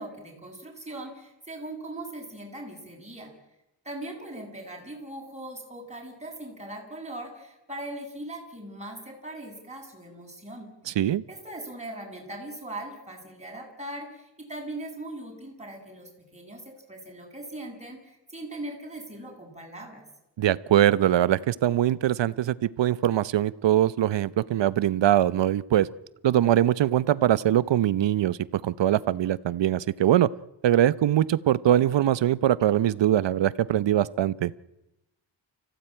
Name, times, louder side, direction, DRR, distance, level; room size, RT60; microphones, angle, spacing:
voice 1, 0.0-3.3 3.8-10.7 11.3-20.0, right 1 dB, 15° right, 0 dB, 8.0 m, -40 dB
voice 2, 10.9-11.2 20.4-25.9 26.2-30.3 30.6-34.5, right 11 dB, 75° right, 18 dB, 0.9 m, -22 dB
30.0 x 16.0 x 9.0 m, 0.93 s
cardioid pair, 105°, 44 cm